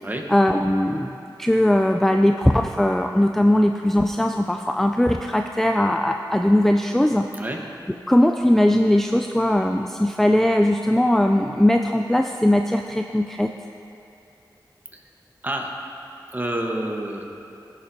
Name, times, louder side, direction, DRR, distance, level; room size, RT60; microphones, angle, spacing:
voice 1, 0.3-7.3 8.1-13.5, left 1 dB, 5° left, 4 dB, 0.3 m, -19 dB
voice 2, 15.4-15.7 16.3-17.2, right 1 dB, 20° right, 1 dB, 1.2 m, -28 dB
15.5 x 7.2 x 2.7 m, 2.7 s
cardioid pair, 55°, 8 cm